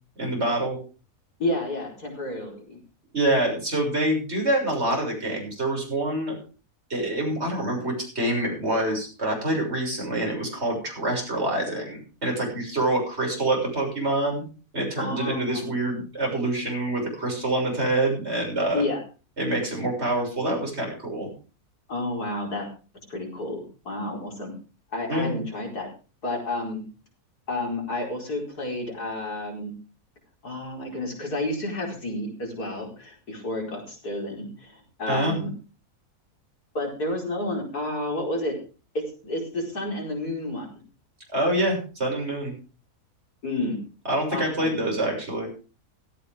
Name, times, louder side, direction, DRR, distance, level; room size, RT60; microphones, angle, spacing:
voice 1, 0.2-0.8 3.1-6.4 6.9-14.4 14.7-18.8 19.4-21.3 25.1-25.3 35.1-35.4 41.3-42.5 44.0-45.5, right 1 dB, 45° right, 1 dB, 6.9 m, -26 dB
voice 2, 1.4-2.8 15.0-15.7 18.7-19.0 21.9-22.7 23.1-24.5 24.9-25.9 26.2-26.8 27.5-29.7 30.4-35.5 36.7-38.6 38.9-40.8 43.4-43.8 44.3-44.8, left 1 dB, 85° left, 0 dB, 5.1 m, -30 dB
17.0 x 13.5 x 3.6 m, 0.35 s
omnidirectional pair, 1.6 m